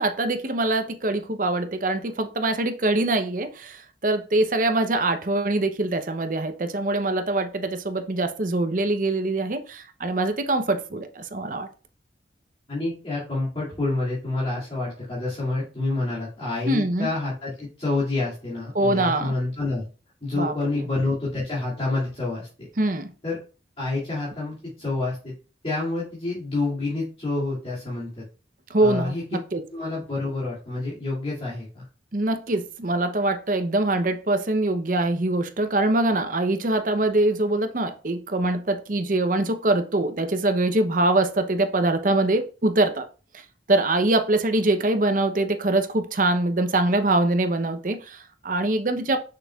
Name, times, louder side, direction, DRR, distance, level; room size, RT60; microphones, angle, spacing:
voice 1, 0.0-11.7 16.7-17.1 18.7-19.3 20.3-20.9 22.8-23.1 28.7-29.6 32.1-43.0 43.7-49.2, right 2 dB, 45° right, 0.7 m, -23 dB
voice 2, 12.7-19.9 20.2-22.5 23.2-23.4 23.8-25.3 25.6-28.2 28.8-29.2 29.7-31.8, left 2 dB, 35° left, 2.3 m, -28 dB
6.4 x 6.3 x 2.3 m
head